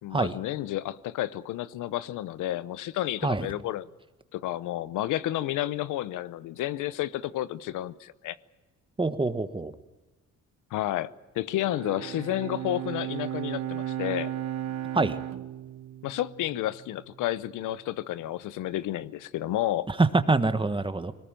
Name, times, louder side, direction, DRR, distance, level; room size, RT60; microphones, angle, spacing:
voice 1, 0.0-3.9 4.3-8.4 10.7-14.3 16.0-19.9, left 14 dB, 85° left, 0.8 m, -31 dB
voice 2, 9.0-9.7 14.9-15.2 19.9-21.1, right 3 dB, 15° right, 1.4 m, -25 dB
Bowed string instrument, 11.6-17.1, right 11 dB, 60° right, 0.9 m, -35 dB
21.0 x 19.0 x 8.9 m
cardioid pair, 90°, 30 cm